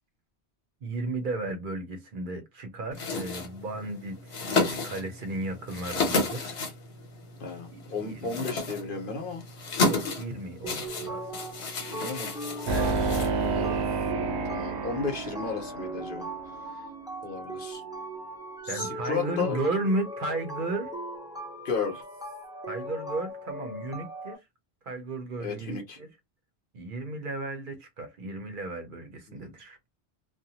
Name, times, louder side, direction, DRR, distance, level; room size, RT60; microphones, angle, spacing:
voice 1, 0.8-6.6 7.7-8.4 9.8-11.2 12.7-13.0 17.5-17.6 18.7-20.9 22.7-24.4 24.8-26.1 26.7-29.8, right 2 dB, 55° right, 0.8 m, -34 dB
sound 1, 2.9-13.8, left 3 dB, 80° left, 1.2 m, -32 dB
voice 2, 7.4-9.5 11.9-12.3 13.3-13.8 14.4-16.3 17.2-17.8 18.6-19.6 21.6-22.0 25.4-26.0 29.3-29.5, left 5 dB, 55° left, 1.0 m, -34 dB
sound 2, 10.6-24.4, right 1 dB, 5° right, 0.3 m, -39 dB
sound 3, 12.7-16.1, right 4 dB, 85° right, 0.9 m, -29 dB
2.5 x 2.2 x 2.8 m
omnidirectional pair, 1.1 m